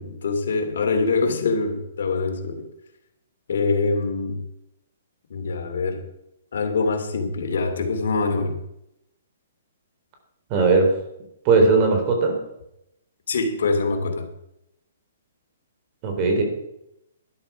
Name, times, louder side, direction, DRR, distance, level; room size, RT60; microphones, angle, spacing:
voice 1, 0.0-2.7 3.5-4.4 5.3-6.0 6.5-8.6 13.3-14.3, left 3 dB, 75° left, 5 dB, 3.0 m, -24 dB
voice 2, 10.5-10.9 11.5-12.4 16.0-16.4, right 4 dB, 30° right, 3 dB, 4.0 m, -18 dB
12.5 x 11.5 x 5.8 m, 0.82 s
hypercardioid pair, 155°, 0 cm